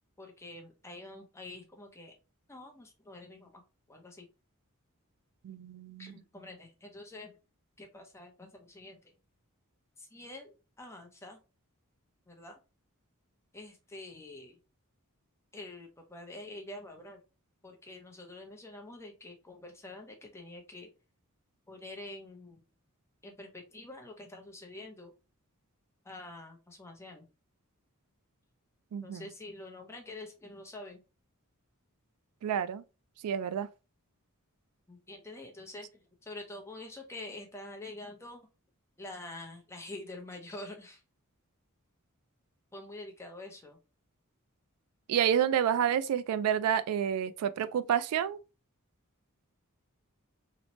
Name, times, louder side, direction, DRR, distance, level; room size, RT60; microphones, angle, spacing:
voice 1, 0.2-2.2 2.5-3.6 3.9-4.3 6.0-7.3 7.8-9.1 10.0-11.4 12.3-12.6 13.5-14.6 15.5-17.2 17.6-20.9 21.7-22.6 23.2-25.1 26.0-27.3 29.0-31.0 34.9-38.4 39.0-41.0 42.7-43.8, left 2 dB, 10° left, 0.6 m, -46 dB
voice 2, 5.4-6.1 28.9-29.2 32.4-32.8 33.2-33.7 45.1-48.4, right 9 dB, 90° right, 0.3 m, -29 dB
2.9 x 2.1 x 2.8 m
head